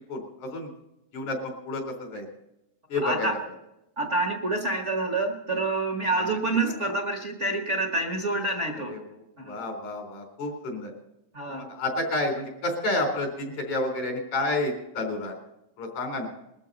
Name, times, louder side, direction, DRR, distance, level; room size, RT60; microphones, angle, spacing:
voice 1, 0.1-0.7 1.1-2.3 2.9-3.4 6.1-6.3 8.9-9.0 9.5-10.9 11.5-15.3 15.8-16.3, left 2 dB, 85° left, 2 dB, 5.2 m, -30 dB
voice 2, 3.0-3.3 4.0-9.0 9.4-9.6 11.3-11.7, right 2 dB, 40° right, 1 dB, 1.1 m, -27 dB
21.0 x 13.5 x 4.1 m, 0.87 s
omnidirectional pair, 3.3 m